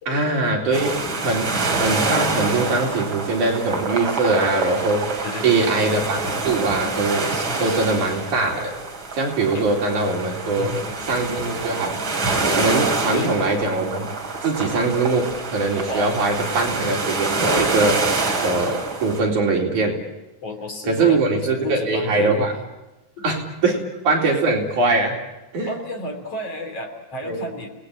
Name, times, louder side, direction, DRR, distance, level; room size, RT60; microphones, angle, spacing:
voice 1, 0.1-5.2 5.4-7.3 7.6-8.8 9.1-10.8 11.1-12.0 12.5-14.1 14.4-18.1 18.4-20.0 20.9-22.5 23.2-25.2 25.5-25.7 27.2-27.4, right 3 dB, 60° right, -1 dB, 5.3 m, -22 dB
sound 1, 0.7-19.2, right 3 dB, 35° right, 3.8 m, -26 dB
voice 2, 5.2-5.7 7.3-8.0 9.5-9.7 10.6-11.0 13.1-13.4 15.9-16.1 20.4-22.4 23.2-23.4 25.7-27.7, left 2 dB, 45° left, 5 dB, 3.8 m, -32 dB
29.5 x 19.0 x 8.8 m, 1.0 s
omnidirectional pair, 4.0 m